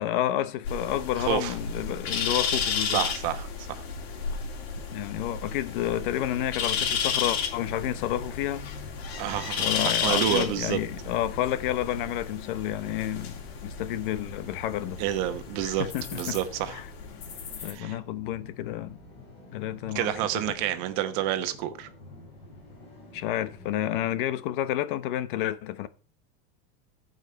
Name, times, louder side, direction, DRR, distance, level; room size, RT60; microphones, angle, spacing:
voice 1, 0.0-3.1 4.9-8.7 9.6-15.0 15.6-16.4 16.7-16.9 17.6-19.0 19.5-20.1 20.5-20.6 23.1-25.9, left 12 dB, 55° left, 0.9 m, -30 dB
sound 1, 0.6-17.7, left 6 dB, 85° left, 2.9 m, -33 dB
voice 2, 1.2-1.5 2.9-3.8 9.2-10.8 15.0-16.8 17.6-18.0 19.9-21.9, right 12 dB, 45° right, 1.1 m, -29 dB
sound 2, 4.7-24.2, left 2 dB, 20° left, 5.1 m, -49 dB
14.5 x 5.5 x 4.5 m
supercardioid pair, 175°, 30 cm